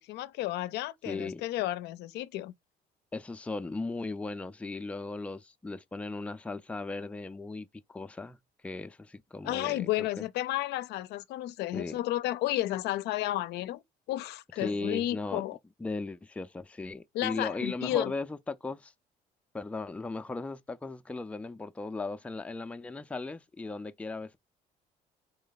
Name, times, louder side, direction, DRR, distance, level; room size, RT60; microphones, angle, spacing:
voice 1, 0.0-2.5 9.4-13.8 14.1-15.6 17.1-18.1, left 15 dB, 80° left, 0.5 m, -32 dB
voice 2, 1.1-1.4 3.1-8.4 8.6-10.1 11.7-12.0 14.6-15.4 15.8-18.9 19.5-24.4, left 3 dB, 10° left, 0.4 m, -37 dB
4.3 x 3.2 x 3.9 m
cardioid pair, 110°, 17 cm